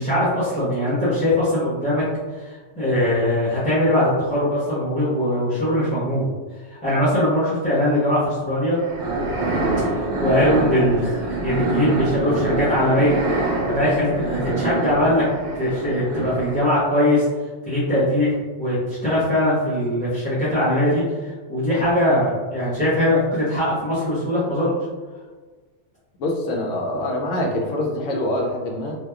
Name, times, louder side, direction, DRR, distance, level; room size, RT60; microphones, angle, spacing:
voice 1, 0.0-2.0 2.4-6.3 6.7-8.8 9.8-13.2 13.6-15.3 15.6-17.2 17.7-24.7, left 1 dB, 10° left, -11 dB, 0.6 m, -21 dB
sound 1, 8.8-16.8, right 2 dB, 60° right, 0.7 m, -25 dB
voice 2, 26.2-29.0, left 1 dB, 85° left, 0 dB, 0.9 m, -25 dB
2.9 x 2.2 x 2.3 m, 1.4 s
omnidirectional pair, 1.2 m